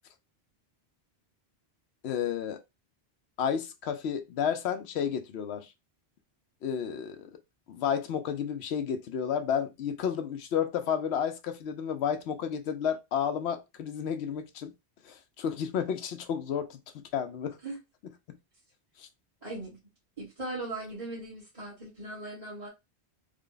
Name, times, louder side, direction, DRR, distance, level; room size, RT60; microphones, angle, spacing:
voice 1, 2.0-2.6 3.4-5.7 6.6-7.3 7.7-14.7 15.0-17.6 19.0-19.1, left 8 dB, 75° left, 0.9 m, -31 dB
voice 2, 19.4-19.8 20.2-22.7, right 2 dB, 35° right, 1.4 m, -39 dB
3.4 x 2.2 x 3.8 m
omnidirectional pair, 1.1 m